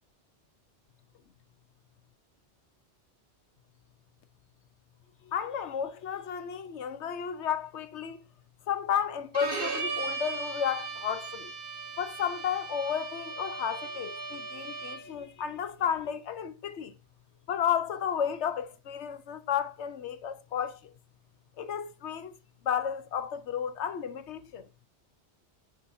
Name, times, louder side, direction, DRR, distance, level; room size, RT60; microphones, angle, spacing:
voice 1, 5.2-8.3 8.7-11.5 12.0-17.0 17.5-20.8 21.6-22.4 22.6-24.7, left 8 dB, 80° left, 1.1 m, -32 dB
Bowed string instrument, 9.3-15.2, right 4 dB, 55° right, 1.4 m, -37 dB
6.3 x 6.0 x 2.6 m
omnidirectional pair, 1.1 m